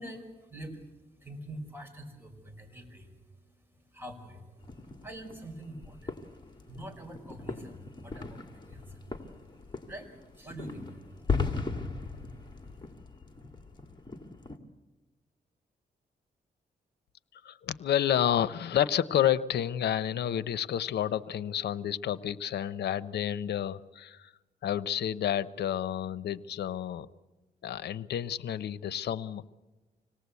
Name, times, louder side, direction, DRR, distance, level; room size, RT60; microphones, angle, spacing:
voice 1, 0.0-12.8, right 1 dB, 10° right, 3 dB, 4.8 m, -46 dB
sound 1, 4.6-14.6, left 4 dB, 25° left, 2.1 m, -38 dB
voice 2, 17.4-24.3 24.6-27.1 27.6-29.5, left 10 dB, 85° left, 16 dB, 0.7 m, -30 dB
26.0 x 18.5 x 8.3 m, 1.2 s
cardioid pair, 95°, 17 cm